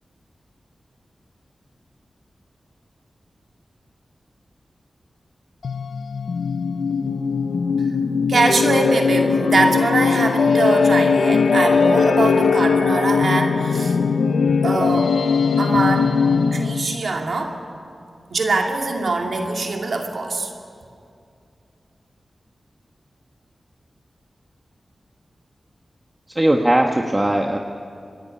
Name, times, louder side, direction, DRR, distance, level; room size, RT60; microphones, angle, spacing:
sound 1, 5.6-17.0, left 5 dB, 85° left, 0.7 m, -19 dB
voice 1, 8.3-14.0 14.6-15.2 15.6-16.1 16.5-17.6 18.3-20.5, right 3 dB, 70° right, 2 dB, 2.5 m, -22 dB
voice 2, 26.3-27.6, right 1 dB, 20° right, 3 dB, 1.2 m, -18 dB
26.5 x 11.0 x 9.8 m, 2.4 s
cardioid pair, 60°, 0 cm